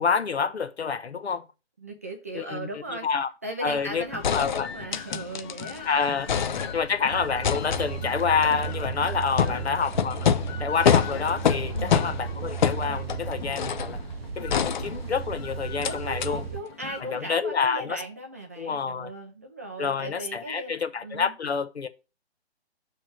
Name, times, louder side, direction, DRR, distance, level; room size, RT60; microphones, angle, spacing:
voice 1, 0.0-1.4 2.3-2.7 3.0-3.3 3.6-4.0 4.3-4.7 5.9-10.3 10.6-14.0 14.4-16.4 17.0-18.0 18.6-19.1 19.8-21.9, left 5 dB, 75° left, 1.0 m, -28 dB
voice 2, 1.8-3.1 3.4-5.9 6.3-6.7 9.4-9.7 11.7-12.1 15.8-21.3, right 1 dB, 15° right, 0.4 m, -38 dB
sound 1, 3.8-3.9 4.2-5.8 6.1-7.0 7.4-14.0 14.5-15.4 15.8-15.9 16.2-16.3, left 8 dB, 45° left, 0.5 m, -27 dB
sound 2, 4.0-17.3, left 7 dB, 25° left, 0.9 m, -43 dB
sound 3, 7.1-16.6, right 7 dB, 65° right, 0.6 m, -35 dB
6.1 x 3.3 x 5.7 m
figure-of-eight pair, 140°, 32 cm